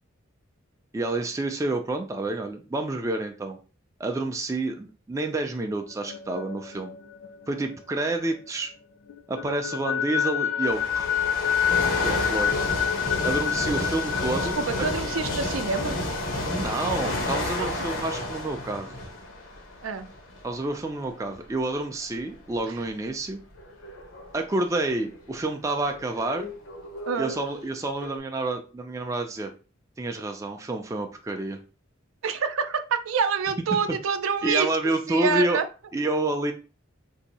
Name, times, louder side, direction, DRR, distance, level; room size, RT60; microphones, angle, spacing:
voice 1, 0.9-3.6 4.0-6.9 7.5-8.7 9.3-11.1 12.0-12.5 13.2-14.6 16.5-19.0 20.4-23.4 24.3-26.5 27.2-29.5 30.0-31.6 34.4-35.6 35.9-36.5, right 2 dB, 15° right, 4 dB, 0.3 m, -29 dB
sound 1, 5.9-8.7 9.1-18.5, left 9 dB, 65° left, 0.5 m, -29 dB
sound 2, 10.6-20.6 21.2-21.4 22.2-25.2 25.9-27.7 28.0-28.2, left 1 dB, 85° left, 0.9 m, -31 dB
voice 2, 14.5-16.0 17.6-17.9 19.8-20.1 27.1-27.4 32.2-34.7 35.1-35.7, right 5 dB, 85° right, 10 dB, 0.4 m, -27 dB
2.7 x 2.6 x 4.1 m, 0.34 s
head